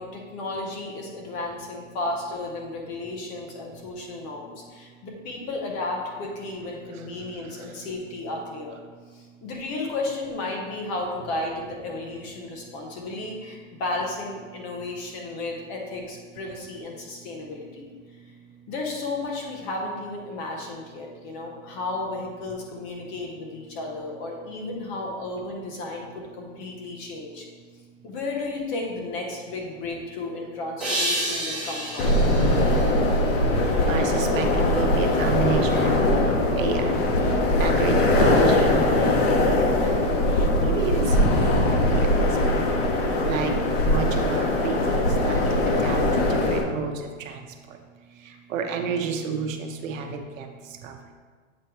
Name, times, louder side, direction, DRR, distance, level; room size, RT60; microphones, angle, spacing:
voice 1, 0.0-8.8 9.1-17.9 18.7-26.1 26.3-27.4 28.0-32.2, left 2 dB, 20° left, 0 dB, 0.5 m, -33 dB
sound 1, 30.8-33.9, right 1 dB, ahead, 1.2 m, -31 dB
sound 2, 32.0-46.6, left 1 dB, 50° left, 1.0 m, -21 dB
voice 2, 33.9-36.0 36.3-37.0 37.6-39.5 39.8-40.0 40.6-42.3 43.2-43.5 43.8-44.8 45.2-45.4 45.8-46.0 46.3-46.9 47.3-47.4 48.5-50.5 50.8-50.9, right 5 dB, 80° right, 4 dB, 1.0 m, -30 dB
7.7 x 3.0 x 4.6 m, 1.5 s
supercardioid pair, 165°, 38 cm